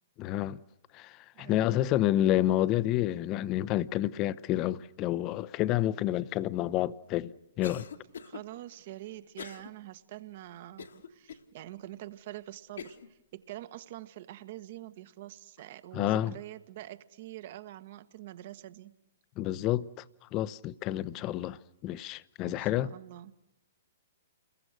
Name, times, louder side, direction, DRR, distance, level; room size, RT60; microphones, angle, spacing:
voice 1, 0.2-0.6 0.9-7.9 15.9-16.3 19.4-20.0 20.3-21.6 21.8-22.9, left 13 dB, 30° left, 0.8 m, -29 dB
voice 2, 1.3-1.8 8.2-19.0 22.4-23.3, right 15 dB, 50° right, 1.6 m, -45 dB
Cough, 7.6-8.4 9.4-9.7 10.2-10.3 10.8-11.4 12.1-12.2 12.8-13.1, left 6 dB, 70° left, 1.8 m, -43 dB
29.5 x 21.5 x 6.5 m
figure-of-eight pair, 120°, 0 cm